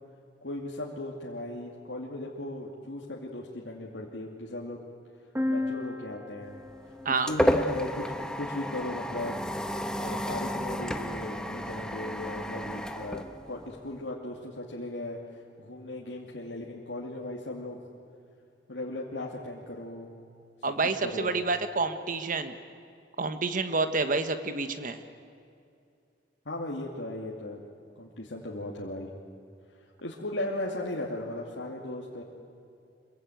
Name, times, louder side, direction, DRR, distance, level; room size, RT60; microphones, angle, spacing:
voice 1, 0.4-4.8 5.5-6.6 7.1-9.4 10.0-15.2 15.6-17.8 18.7-20.1 21.0-21.3 26.4-27.6 28.0-29.1 30.0-32.2, left 1 dB, 75° left, -3 dB, 2.6 m, -37 dB
sound 1, 5.4-9.1, left 2 dB, 10° right, 1.7 m, -36 dB
sound 2, 6.5-14.0, equal, 5° left, 1.2 m, -32 dB
voice 2, 20.6-22.5 23.2-25.0, right 3 dB, 50° right, 9 dB, 1.3 m, -28 dB
25.5 x 22.5 x 9.2 m, 2.5 s
head